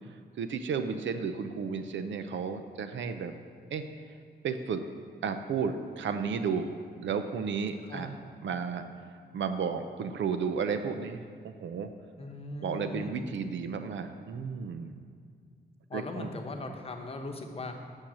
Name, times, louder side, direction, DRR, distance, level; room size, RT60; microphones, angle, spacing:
voice 1, 0.4-3.3 3.7-3.9 4.4-4.8 5.2-6.8 7.0-8.1 8.4-8.8 9.3-11.9 12.6-14.9 15.9-16.3, right 6 dB, 90° right, 8 dB, 0.7 m, -33 dB
voice 2, 7.8-8.1 12.2-13.3 15.9-17.7, left 2 dB, 30° left, 4 dB, 0.9 m, -39 dB
9.0 x 6.6 x 7.2 m, 2.1 s
wide cardioid pair, 180°, 19 cm